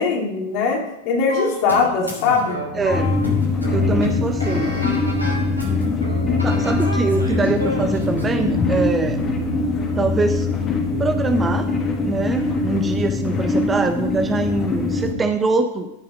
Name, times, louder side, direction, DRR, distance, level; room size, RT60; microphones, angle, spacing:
voice 1, 0.0-2.6 6.7-6.8, left 4 dB, 45° left, 0 dB, 2.6 m, -21 dB
sound 1, 1.3-8.3, left 1 dB, 85° right, 2.9 m, -30 dB
voice 2, 2.7-3.1 3.7-4.7 5.7-5.9 6.4-9.2 10.0-10.6 11.0-11.7 12.0-15.9, right 3 dB, 15° right, 8 dB, 0.7 m, -23 dB
sound 2, 2.9-15.1, left 3 dB, 25° left, 1.8 m, -22 dB
14.0 x 5.8 x 5.1 m, 0.93 s
figure-of-eight pair, 90°, 0 cm